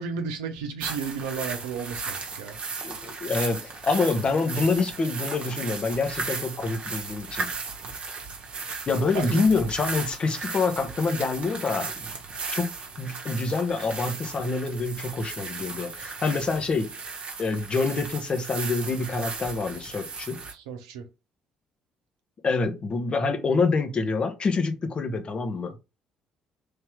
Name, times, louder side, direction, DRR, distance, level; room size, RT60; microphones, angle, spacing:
voice 1, 0.0-2.6 9.1-9.4 20.5-21.1, right 6 dB, 70° right, 0.7 m, -33 dB
sound 1, 0.8-20.5, right 4 dB, 45° right, 0.9 m, -36 dB
voice 2, 2.8-7.5 8.9-12.1 12.5-12.7 13.0-16.9 17.4-20.4 22.4-25.8, left 4 dB, 35° left, 0.8 m, -26 dB
3.3 x 2.8 x 3.4 m
figure-of-eight pair, 50°, 3 cm